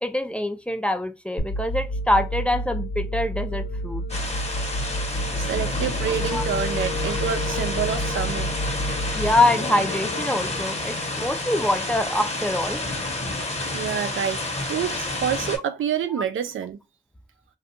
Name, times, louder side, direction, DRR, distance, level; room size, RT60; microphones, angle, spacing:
voice 1, 0.0-4.0 6.3-6.4 9.1-12.8 16.1-16.2, left 1 dB, 5° left, 0.4 m, -24 dB
sound 1, 1.4-10.4, equal, 65° left, 0.9 m, -30 dB
sound 2, 4.1-15.6, left 2 dB, 30° left, 1.0 m, -30 dB
voice 2, 5.4-8.5 13.7-16.8, right 8 dB, 80° right, 0.4 m, -28 dB
Wind instrument woodwind instrument, 6.1-12.2, left 4 dB, 85° left, 0.4 m, -36 dB
2.5 x 2.3 x 2.7 m
cardioid pair, 40°, 20 cm